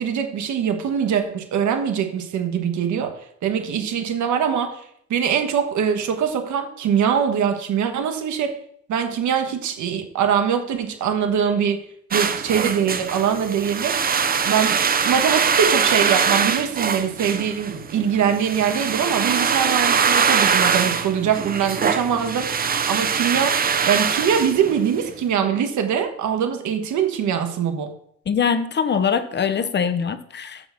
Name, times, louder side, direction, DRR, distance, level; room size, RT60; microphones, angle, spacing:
voice 1, 0.0-4.8 5.1-8.6 8.9-11.8 12.1-14.0 14.4-22.5 22.9-23.6 23.9-27.9, right 7 dB, 75° right, 6 dB, 1.5 m, -23 dB
sound 1, 12.1-25.1, right 6 dB, 30° right, 0.6 m, -22 dB
voice 2, 28.3-30.7, left 6 dB, 35° left, 10 dB, 0.8 m, -22 dB
6.5 x 5.9 x 7.0 m, 0.66 s
cardioid pair, 125°, 29 cm